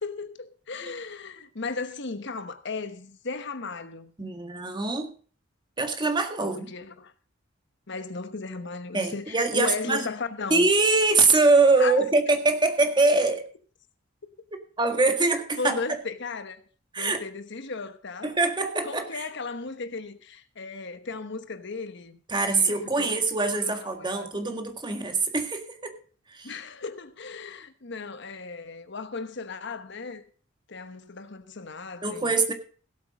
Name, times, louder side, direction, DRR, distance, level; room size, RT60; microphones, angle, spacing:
voice 1, 0.0-4.1 6.4-7.1 7.9-10.7 11.8-12.0 15.6-16.6 17.0-18.3 18.8-22.2 22.5-23.1 23.5-24.3 26.4-30.2 30.7-32.4, left 4 dB, 65° left, 1.1 m, -36 dB
voice 2, 4.2-5.1 5.8-6.7 8.9-10.1 10.5-13.4 14.8-16.0 16.9-17.2 18.2-19.3 22.3-26.0 26.3-26.5 32.0-32.5, right 3 dB, 25° right, 1.7 m, -23 dB
16.5 x 8.2 x 4.9 m
head